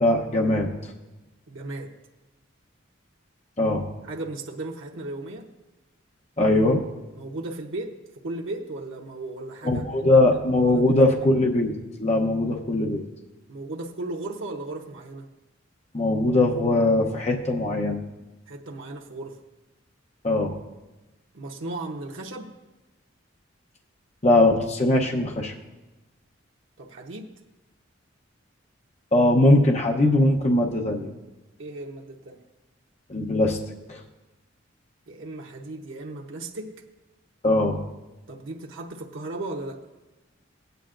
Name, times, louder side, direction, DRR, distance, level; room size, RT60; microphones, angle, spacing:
voice 1, 0.0-0.9 3.6-3.9 6.4-6.8 9.6-11.7 12.0-13.0 15.9-18.0 20.2-20.6 24.2-25.5 29.1-31.1 33.1-33.6 33.9-34.0 37.4-37.8, left 2 dB, 35° left, 1 dB, 0.8 m, -21 dB
voice 2, 1.5-1.9 4.0-5.5 7.2-10.1 10.7-11.3 13.5-15.3 18.5-19.4 21.3-22.5 26.8-27.3 31.6-32.4 35.1-36.7 38.3-39.8, right 2 dB, 80° right, 0 dB, 0.9 m, -36 dB
17.0 x 9.2 x 2.5 m, 1.1 s
head